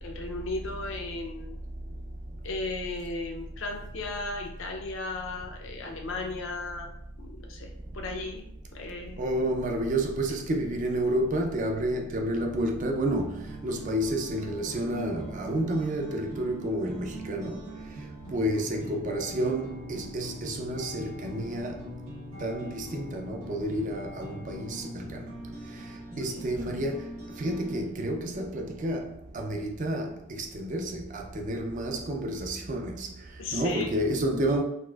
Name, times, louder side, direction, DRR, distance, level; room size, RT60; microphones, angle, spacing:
voice 1, 0.0-1.5 2.4-6.9 7.2-8.4 8.7-9.2 26.3-26.5 33.4-34.0, left 3 dB, 65° left, 0.5 m, -36 dB
voice 2, 9.2-17.6 18.3-22.0 22.4-25.2 26.2-33.1 33.5-34.6, right 1 dB, 35° right, 0.4 m, -30 dB
sound 1, 13.0-27.8, right 1 dB, 90° right, 1.3 m, -42 dB
4.0 x 2.5 x 2.3 m
head